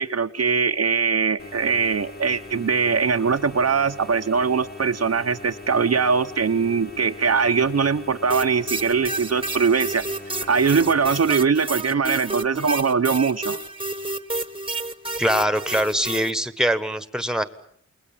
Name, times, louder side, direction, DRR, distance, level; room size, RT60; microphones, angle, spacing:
voice 1, 0.0-10.0 10.5-13.6, right 5 dB, 55° right, 7 dB, 0.9 m, -21 dB
sound 1, 1.4-11.3, left 2 dB, 30° left, 2.0 m, -41 dB
sound 2, 8.3-16.3, right 2 dB, 20° right, 1.3 m, -30 dB
voice 2, 15.2-17.4, equal, ahead, 13 dB, 1.4 m, -23 dB
29.0 x 21.0 x 7.3 m, 0.66 s
wide cardioid pair, 95°, 30 cm